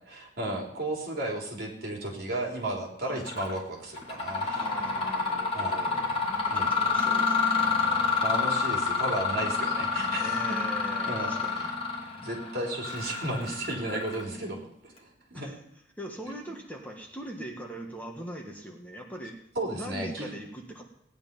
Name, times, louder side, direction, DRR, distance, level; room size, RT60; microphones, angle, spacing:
voice 1, 0.1-4.7 5.5-5.8 6.5-6.7 8.2-10.6 11.1-11.7 12.2-15.5 19.6-20.3, right 1 dB, 55° right, 0 dB, 3.7 m, -34 dB
Mechanisms, 3.2-3.6 3.9-14.5, left 4 dB, 30° left, 2.5 m, -28 dB
voice 2, 4.5-7.7 10.2-11.7 15.3-15.6 16.0-19.4 19.7-20.8, equal, 10° left, 1 dB, 1.5 m, -41 dB
17.5 x 10.0 x 5.4 m, 0.80 s
head